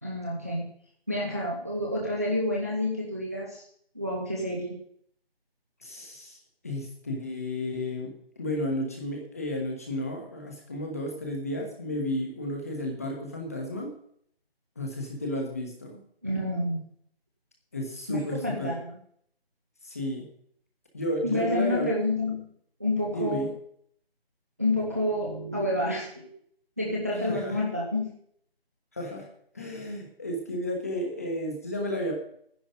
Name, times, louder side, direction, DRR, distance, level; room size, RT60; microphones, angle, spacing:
voice 1, 0.0-0.7 1.1-3.7 3.9-4.8 16.2-16.8 18.1-19.0 21.2-22.5 22.8-23.5 24.6-26.3 26.8-28.1, left 1 dB, 15° right, -2 dB, 0.8 m, -29 dB
voice 2, 5.8-6.4 6.6-13.9 14.8-16.0 17.7-18.7 19.8-20.3 20.9-21.9 23.1-23.5 27.2-27.6 28.9-29.3 29.5-32.1, left 1 dB, 15° left, 0 dB, 1.2 m, -32 dB
11.5 x 10.0 x 5.2 m, 0.65 s
figure-of-eight pair, 170°, 31 cm